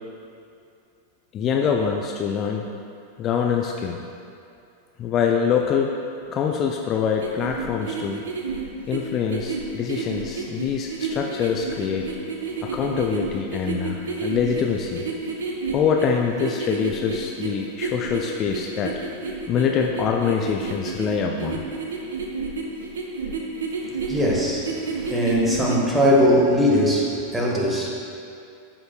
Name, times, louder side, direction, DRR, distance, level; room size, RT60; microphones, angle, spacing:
voice 1, 1.3-2.7 3.2-4.0 5.0-5.9 6.3-8.2 8.9-12.1 12.6-15.0 15.7-18.9 19.5-21.6, left 7 dB, 30° left, 1 dB, 0.4 m, -24 dB
sound 1, 7.2-25.8, right 4 dB, 65° right, 0.7 m, -31 dB
voice 2, 24.1-27.9, equal, 10° right, -3 dB, 1.4 m, -20 dB
12.0 x 5.1 x 2.3 m, 2.5 s
figure-of-eight pair, 90°, 0 cm